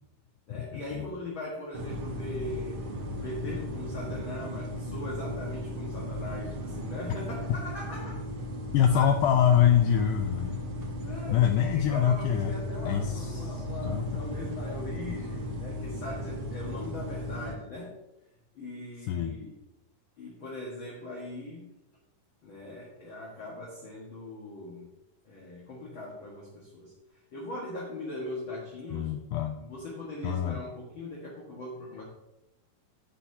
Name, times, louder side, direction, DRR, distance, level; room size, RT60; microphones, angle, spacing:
voice 1, 0.5-2.8 3.2-8.2 8.9-9.1 11.0-18.0 18.5-19.5 20.2-21.7 22.4-24.9 25.2-29.1 29.6-32.0, left 1 dB, 45° left, -4 dB, 1.8 m, -40 dB
sound 1, 1.7-17.5, equal, 75° right, 1.2 m, -36 dB
voice 2, 8.7-10.6 11.3-12.5 12.8-14.0 19.1-19.3 28.9-29.6 30.2-30.6, left 9 dB, 85° left, 6 dB, 1.8 m, -25 dB
14.5 x 5.8 x 2.8 m, 0.92 s
omnidirectional pair, 4.1 m